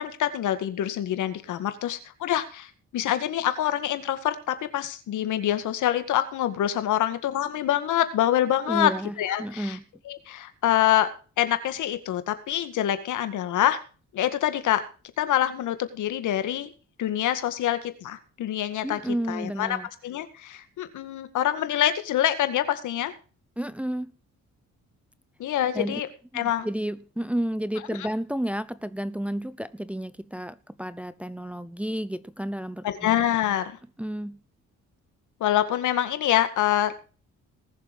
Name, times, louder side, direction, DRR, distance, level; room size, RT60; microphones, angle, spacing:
voice 1, 0.0-8.9 9.2-9.8 10.1-11.1 11.4-13.8 14.1-14.8 15.2-16.7 17.0-19.0 19.3-19.8 20.0-23.1 25.4-26.1 26.3-26.7 32.8-33.8 35.4-36.9, left 11 dB, 80° left, 2.0 m, -25 dB
voice 2, 8.7-9.8 18.8-19.9 23.6-24.1 25.7-26.0 26.3-32.9 34.0-34.4, right 1 dB, 5° right, 0.7 m, -31 dB
19.0 x 7.1 x 5.3 m
cardioid pair, 90°, 30 cm